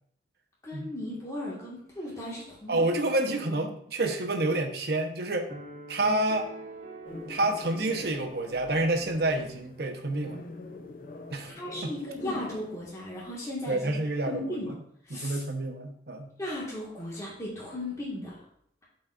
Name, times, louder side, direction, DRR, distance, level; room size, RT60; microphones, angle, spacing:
voice 1, 0.6-2.8 3.4-3.6 11.5-13.9 14.3-14.7 15.0-15.4 16.4-18.4, left 1 dB, 20° left, -6 dB, 1.6 m, -36 dB
voice 2, 2.7-5.5 5.9-6.5 7.3-10.4 11.3-11.5 11.8-11.9 13.7-14.6 15.1-16.3, right 2 dB, 60° right, 4 dB, 0.9 m, -28 dB
sound 1, 5.5-8.7, right 3 dB, 40° right, 1.3 m, -44 dB
sound 2, 7.0-12.9, left 2 dB, 50° left, 0.6 m, -43 dB
12.0 x 4.2 x 2.5 m, 0.67 s
head